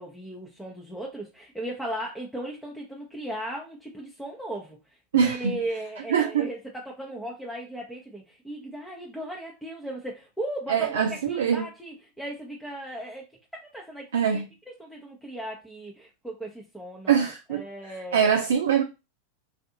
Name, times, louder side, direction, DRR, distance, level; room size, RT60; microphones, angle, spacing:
voice 1, 0.0-4.8 5.2-13.2 13.5-14.4 14.8-18.3, right 1 dB, 5° left, 0.7 m, -37 dB
voice 2, 5.1-5.5 6.1-6.5 10.7-11.7 14.1-14.5 17.1-17.6 18.1-18.8, right 7 dB, 75° right, 0.4 m, -23 dB
2.5 x 2.4 x 2.7 m
hypercardioid pair, 95°, 0 cm